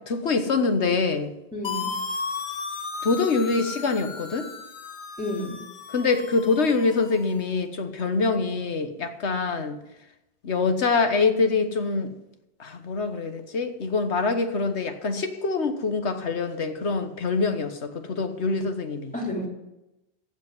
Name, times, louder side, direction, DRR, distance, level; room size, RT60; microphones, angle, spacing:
voice 1, 0.0-1.3 3.0-4.5 5.9-9.8 10.4-12.1 12.6-19.1, left 4 dB, 85° left, 8 dB, 1.5 m, -25 dB
voice 2, 1.5-1.9 5.2-5.6 19.1-19.5, left 1 dB, 5° left, -3 dB, 3.1 m, -30 dB
sound 1, 1.6-7.4, left 4 dB, 50° left, 1.1 m, -35 dB
15.0 x 5.3 x 9.5 m, 0.92 s
omnidirectional pair, 1.1 m